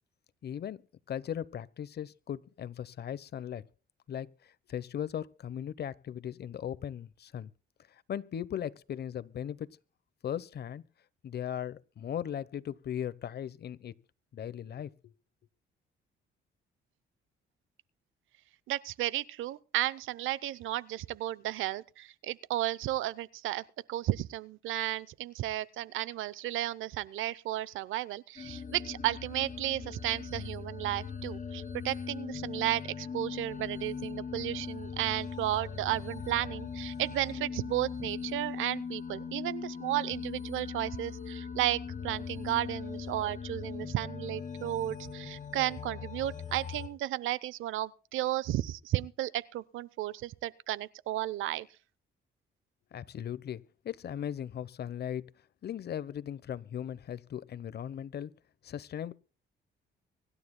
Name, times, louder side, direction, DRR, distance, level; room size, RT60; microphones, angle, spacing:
voice 1, 0.4-3.6 4.1-7.5 8.1-9.7 10.2-10.8 11.2-13.9 14.3-15.1 52.9-55.3 55.6-58.3 58.6-59.1, left 9 dB, 55° left, 0.9 m, -38 dB
voice 2, 18.7-51.7, right 14 dB, 85° right, 0.7 m, -33 dB
sound 1, 28.4-46.9, left 6 dB, 40° left, 2.3 m, -40 dB
24.5 x 12.0 x 2.2 m
cardioid pair, 90°, 20 cm